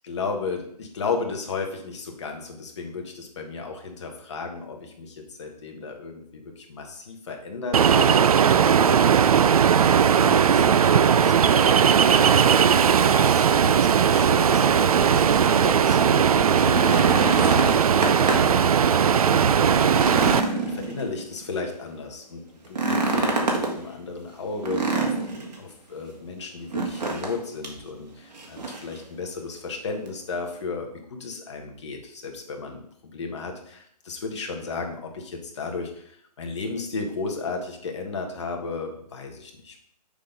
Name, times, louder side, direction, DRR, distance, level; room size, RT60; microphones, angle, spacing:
voice 1, 0.1-8.2 8.7-9.4 10.1-18.6 19.0-32.8 33.1-39.8, left 4 dB, 45° left, 2 dB, 1.4 m, -34 dB
Ocean, 7.7-20.4, right 7 dB, 60° right, 0.4 m, -18 dB
sound 1, 16.6-18.6 19.0-19.1 19.5-21.4 22.6-23.7 24.6-25.5 26.7-27.4 27.6-27.8 28.3-28.9 30.1-30.2, right 3 dB, 80° right, 2.0 m, -26 dB
6.7 x 4.1 x 5.2 m, 0.68 s
hypercardioid pair, 170°, 21 cm